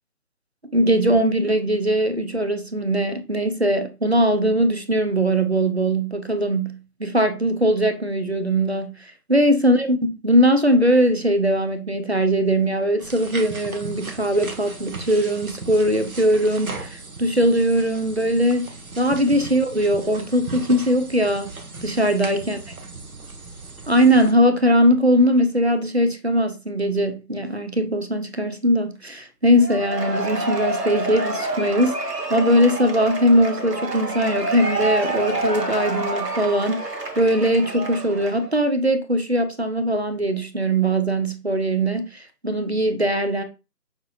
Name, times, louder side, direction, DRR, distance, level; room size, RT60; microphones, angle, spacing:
voice 1, 0.7-18.7 19.0-21.5 21.8-22.6 23.9-43.4, equal, 45° right, 0.5 m, -20 dB
sound 1, 13.0-24.3, right 2 dB, 65° right, 0.9 m, -37 dB
Cheering / Applause / Crowd, 29.6-38.5, right 2 dB, 80° right, 1.3 m, -28 dB
5.8 x 2.8 x 2.4 m
figure-of-eight pair, 160°, 47 cm